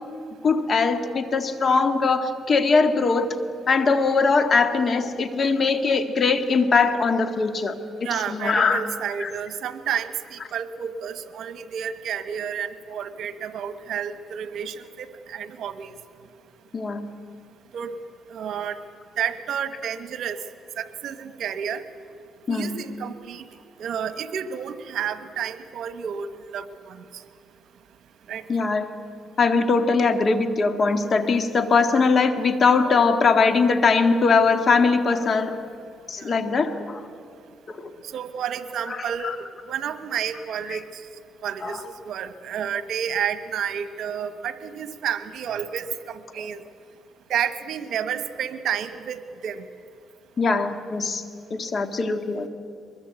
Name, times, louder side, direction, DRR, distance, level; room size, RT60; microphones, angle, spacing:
voice 1, 0.4-3.3 3.7-7.7 8.0-8.8 9.2-9.3 16.7-17.1 22.5-22.8 28.5-28.9 29.4-35.6 36.1-37.0 37.8-37.9 38.9-39.4 40.7-40.8 41.6-41.8 50.4-51.2 51.5-52.5, left 4 dB, 45° left, 8 dB, 1.8 m, -21 dB
voice 2, 8.0-15.9 17.7-18.0 18.3-18.8 19.2-20.4 20.8-21.8 22.5-23.4 23.8-26.3 26.5-27.0 28.3-28.4 36.2-36.3 38.1-40.8 41.4-46.6 47.3-49.6, right 8 dB, 70° right, 11 dB, 1.3 m, -30 dB
23.0 x 21.5 x 8.2 m, 2.4 s
cardioid pair, 90°, 0 cm